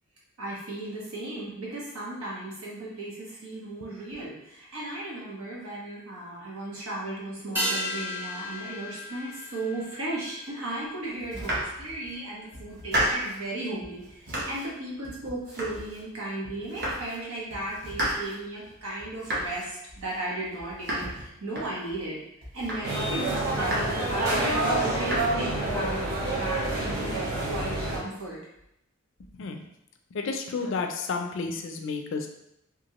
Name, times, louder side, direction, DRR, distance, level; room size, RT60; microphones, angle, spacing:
voice 1, 0.4-22.2 22.5-28.4, right 2 dB, 90° right, -5 dB, 1.1 m, -35 dB
sound 1, 7.6-12.3 12.5-12.6, equal, 10° right, 0.5 m, -35 dB
Domestic sounds home sounds, 11.2-12.2 12.5-13.5 13.8-14.7 15.0-16.2 16.4-17.2 17.5-22.1 22.4-23.1 23.4-24.2 24.5-25.2, right 1 dB, 50° right, 0.8 m, -33 dB
sound 2, 22.8-28.0, right 1 dB, 70° right, 1.2 m, -28 dB
voice 2, 29.3-29.7 30.1-32.3, left 4 dB, 60° left, 4 dB, 0.4 m, -31 dB
3.0 x 2.5 x 2.9 m, 0.80 s
head